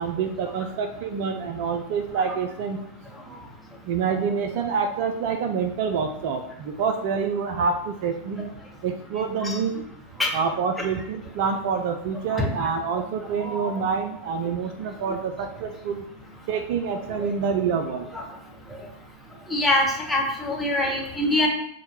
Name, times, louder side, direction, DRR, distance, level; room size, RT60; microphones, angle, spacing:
voice 1, 0.0-2.8 3.9-8.5 8.8-9.8 10.3-16.0 16.5-18.1, right 6 dB, 50° right, 6 dB, 0.3 m, -27 dB
voice 2, 12.3-12.7 13.4-13.7 17.2-17.3 18.1-18.2 19.5-21.5, left 1 dB, 5° left, -2 dB, 0.8 m, -24 dB
6.2 x 2.2 x 2.7 m, 0.75 s
figure-of-eight pair, 90°, 0 cm